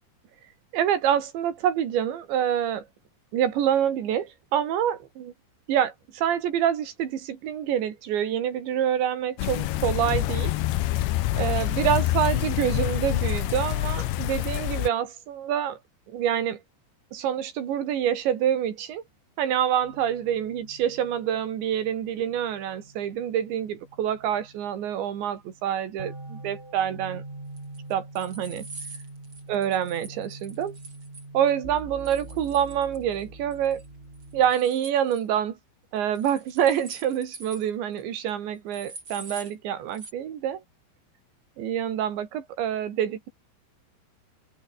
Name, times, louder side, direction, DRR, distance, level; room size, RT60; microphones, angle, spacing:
voice 1, 0.7-2.9 3.3-5.3 5.7-10.5 11.3-15.8 16.1-16.6 17.1-19.0 19.4-27.2 27.9-28.7 29.5-30.8 31.3-33.8 34.3-35.6 35.9-40.6 41.6-43.3, right 10 dB, 80° right, 5.1 m, -26 dB
sound 1, 9.4-14.9, left 15 dB, 80° left, 3.3 m, -26 dB
sound 2, 19.8-34.5, right 2 dB, 15° right, 3.4 m, -44 dB
sound 3, 27.6-31.3 32.0-33.2 33.5-33.9 34.1-35.2 36.1-37.7 38.0-38.1 38.3-38.4 38.7-39.5 39.9-40.1, right 3 dB, 30° right, 5.9 m, -44 dB
open air
omnidirectional pair, 5.1 m